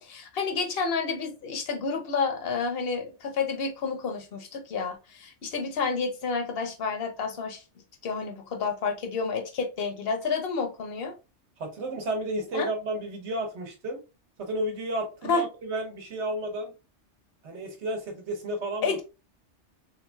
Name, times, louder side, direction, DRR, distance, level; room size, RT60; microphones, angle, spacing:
voice 1, 0.0-7.6 8.0-11.1 12.5-12.7 15.2-15.4 18.8-19.0, left 5 dB, 55° left, 0.9 m, -30 dB
voice 2, 11.6-14.0 14.4-16.7 17.4-19.0, right 1 dB, 70° right, 1.2 m, -32 dB
3.4 x 3.2 x 2.2 m
omnidirectional pair, 1.2 m